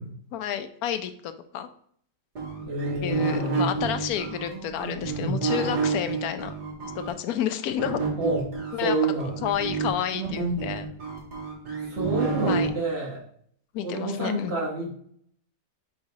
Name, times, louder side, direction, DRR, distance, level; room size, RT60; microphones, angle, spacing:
voice 1, 0.3-1.7 3.0-6.5 7.1-8.0 8.7-9.0 9.4-10.9 11.7-11.8 12.5-12.7 13.7-14.6, left 9 dB, 70° left, 9 dB, 1.0 m, -30 dB
sound 1, 2.4-7.1 7.8-12.7, right 5 dB, 70° right, 2.4 m, -29 dB
voice 2, 2.6-3.7 5.0-5.5 8.2-8.4 8.8-9.4 11.8-13.2 13.8-14.9, right 2 dB, 40° right, -4 dB, 1.7 m, -28 dB
4.8 x 4.1 x 4.8 m, 0.63 s
omnidirectional pair, 1.8 m